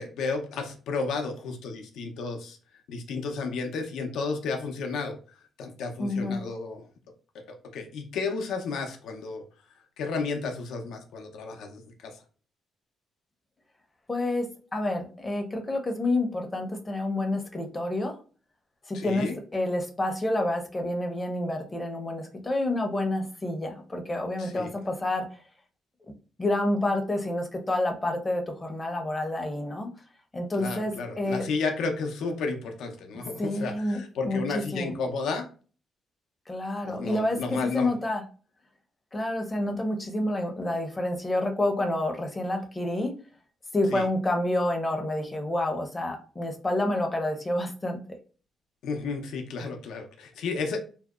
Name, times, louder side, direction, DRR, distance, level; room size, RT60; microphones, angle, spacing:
voice 1, 0.0-2.6 2.9-6.9 7.7-9.4 10.0-12.2 18.9-19.3 24.4-24.7 30.5-35.5 36.8-37.9 43.9-44.1 48.8-50.8, left 4 dB, 80° left, 4 dB, 0.5 m, -32 dB
voice 2, 6.0-6.4 14.1-18.2 18.9-25.3 26.4-29.9 30.3-31.4 33.4-34.0 34.2-34.9 36.5-38.2 39.1-43.2 43.7-48.0, left 1 dB, 20° left, 4 dB, 0.6 m, -28 dB
2.7 x 2.0 x 2.3 m, 0.38 s
cardioid pair, 90°, 0 cm